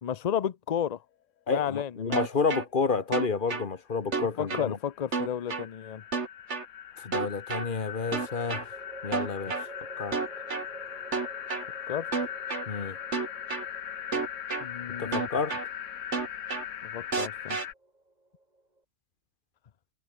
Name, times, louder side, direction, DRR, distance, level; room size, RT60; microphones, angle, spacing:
voice 1, 0.0-1.0 1.5-2.3 4.2-6.0 11.9-12.1 14.6-15.3 16.8-17.6, left 9 dB, 90° left, 0.3 m, -32 dB
voice 2, 1.5-4.8 7.0-8.7 9.0-9.6 10.0-10.2 12.7-13.0 15.0-15.5, left 4 dB, 35° left, 1.5 m, -30 dB
sound 1, 2.1-2.6 3.1-3.6 4.1-4.6 5.1-5.6 6.1-6.6 7.1-7.6 8.1-8.6 9.1-9.6 10.1-10.6 11.1-11.6 12.1-12.6 13.1-13.6 14.1-14.6 15.1-15.6 16.1-16.6 17.1-17.6, right 4 dB, 45° right, 2.3 m, -30 dB
sound 2, 3.7-3.8 3.9-17.7, left 10 dB, 60° left, 1.1 m, -40 dB
sound 3, 4.8-5.2 7.5-18.8, right 2 dB, 25° right, 3.8 m, -50 dB
omnidirectional pair, 1.6 m